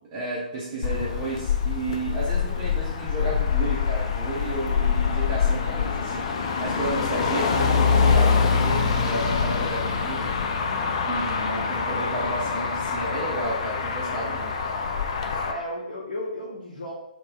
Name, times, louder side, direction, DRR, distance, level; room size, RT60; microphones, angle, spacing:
voice 1, 0.1-10.4 11.1-14.6 15.3-15.4, right 2 dB, 20° right, -7 dB, 0.7 m, -32 dB
Motor vehicle (road), 0.8-15.5, left 5 dB, 40° left, 0.3 m, -25 dB
voice 2, 11.2-11.7 15.5-16.9, left 1 dB, 60° left, -5 dB, 0.7 m, -34 dB
2.6 x 2.2 x 3.9 m, 0.86 s
figure-of-eight pair, 125°, 5 cm